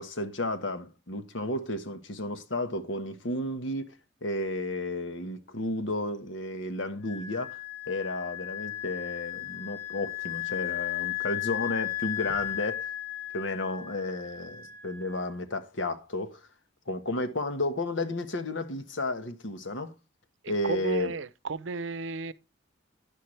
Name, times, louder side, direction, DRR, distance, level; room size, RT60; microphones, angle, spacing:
voice 1, 0.0-3.9 4.2-7.6 7.9-12.9 13.3-16.4 16.9-19.9 20.5-21.1, left 2 dB, 80° left, 1.4 m, -32 dB
Wind instrument woodwind instrument, 7.0-15.3, left 15 dB, 55° left, 3.3 m, -35 dB
voice 2, 20.6-22.3, right 4 dB, 80° right, 0.6 m, -33 dB
10.5 x 10.5 x 3.3 m
head